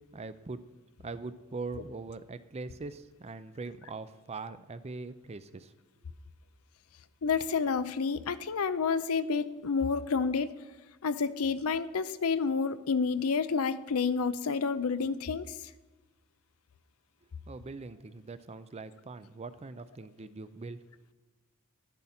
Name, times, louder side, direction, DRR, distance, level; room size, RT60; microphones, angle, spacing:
voice 1, 0.1-0.6 1.0-5.7 17.5-20.8, right 3 dB, 30° right, 14 dB, 0.5 m, -42 dB
voice 2, 7.2-10.5 11.0-15.5, left 5 dB, 80° left, 14 dB, 0.6 m, -29 dB
12.0 x 10.5 x 4.3 m, 1.1 s
head